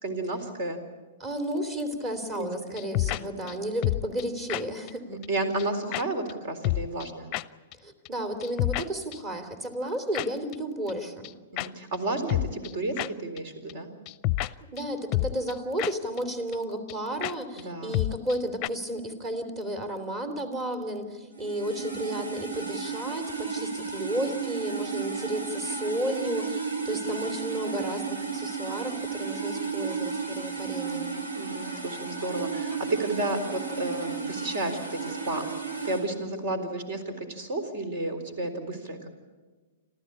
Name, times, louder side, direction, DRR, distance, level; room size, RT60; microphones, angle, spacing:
voice 1, 0.0-0.8 2.4-2.5 3.1-3.6 5.1-7.3 11.5-13.9 17.6-18.0 31.3-35.5 35.8-39.1, right 2 dB, 55° right, 9 dB, 3.9 m, -32 dB
voice 2, 1.2-5.0 7.8-11.3 14.4-31.2, equal, 25° right, 9 dB, 3.2 m, -33 dB
sound 1, 2.8-3.2 3.5-3.6 3.8-4.2 4.5-4.6 4.9-5.0 5.2-5.3 5.6-5.7 5.9-6.0 6.3-6.4 6.6-7.1 7.3-7.4 7.7-7.8 8.1-8.2 8.4-8.8 9.1-9.2 10.1-10.3 10.5-10.6 10.9-11.0 11.2-11.3 11.6-11.7 11.9-12.0 12.3-12.7 13.0-13.1 13.4-13.5 13.7-13.8 14.1-14.5 14.8-14.9 15.1-15.5 15.8-16.2 16.5-16.6 16.9-17.0 17.2-17.3 17.6-17.7 17.9-18.4 18.6-18.7, left 17 dB, 35° left, 0.6 m, -28 dB
sound 2, 21.4-36.0, right 5 dB, 75° right, 3.4 m, -33 dB
26.5 x 14.5 x 8.6 m, 1.4 s
hypercardioid pair, 115°, 0 cm